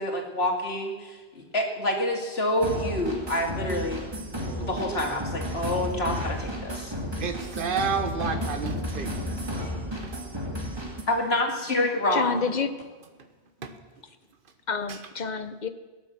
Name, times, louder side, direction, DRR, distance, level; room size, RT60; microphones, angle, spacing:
voice 1, 0.0-4.0 4.5-6.9 11.1-12.4, left 1 dB, 70° left, 1 dB, 2.7 m, -27 dB
sound 1, 2.6-11.0, equal, 25° right, 2.2 m, -33 dB
voice 2, 4.3-4.8 7.2-9.3 10.0-10.1 13.6-13.7, right 5 dB, 55° right, 7 dB, 1.4 m, -31 dB
voice 3, 12.1-12.7 14.7-15.7, left 5 dB, 45° left, 10 dB, 1.0 m, -28 dB
17.5 x 10.5 x 7.5 m, 1.3 s
omnidirectional pair, 1.1 m